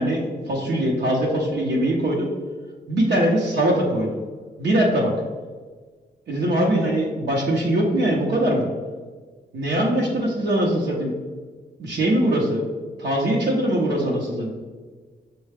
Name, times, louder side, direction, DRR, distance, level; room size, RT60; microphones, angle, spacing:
voice 1, 0.0-2.3 2.9-4.1 4.6-5.1 6.3-8.7 9.5-11.1 11.8-12.6 13.0-14.5, right 1 dB, 75° right, -3 dB, 0.8 m, -22 dB
6.4 x 2.2 x 3.3 m, 1.4 s
cardioid pair, 95°, 18 cm